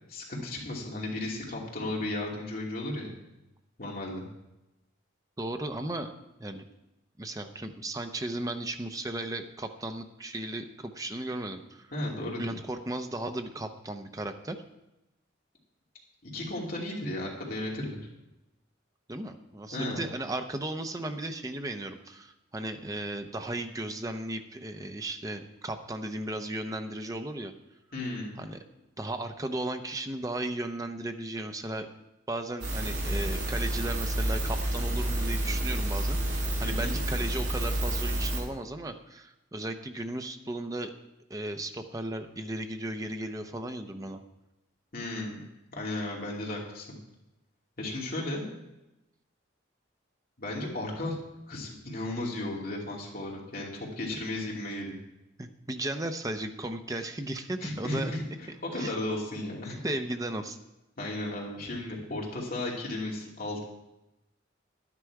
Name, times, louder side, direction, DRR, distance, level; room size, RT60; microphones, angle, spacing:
voice 1, 0.1-3.1 3.8-4.3 11.9-12.6 16.2-18.0 19.7-20.0 27.9-28.4 36.6-37.0 44.9-45.4 45.7-47.0 47.8-48.4 50.4-51.2 51.5-55.0 57.6-58.2 58.6-59.8 61.0-63.6, left 1 dB, 50° left, -2 dB, 2.6 m, -34 dB
voice 2, 5.4-6.1 6.4-6.6 7.2-11.9 12.4-14.6 19.1-27.5 28.4-28.6 29.0-31.9 32.3-40.9 41.3-44.2 55.4-58.1 58.5-58.9 59.8-60.6, right 1 dB, 20° right, 6 dB, 0.7 m, -35 dB
sound 1, 32.6-38.4, right 1 dB, 60° right, 2.8 m, -29 dB
11.5 x 9.9 x 4.7 m, 0.94 s
head